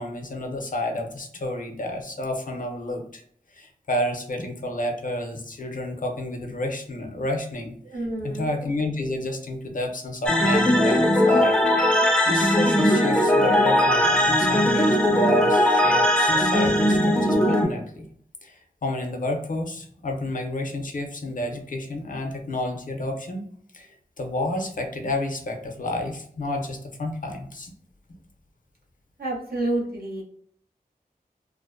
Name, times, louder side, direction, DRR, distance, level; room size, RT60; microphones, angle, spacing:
voice 1, 0.0-3.2 3.5-11.5 11.8-18.1 18.4-23.4 23.7-27.7, left 1 dB, 60° left, 3 dB, 0.5 m, -30 dB
voice 2, 7.8-8.5 29.2-30.2, right 2 dB, 85° right, -2 dB, 0.8 m, -29 dB
sound 1, 10.3-17.7, left 1 dB, 5° left, 0.4 m, -19 dB
2.5 x 2.0 x 2.4 m, 0.63 s
wide cardioid pair, 75°, 15 cm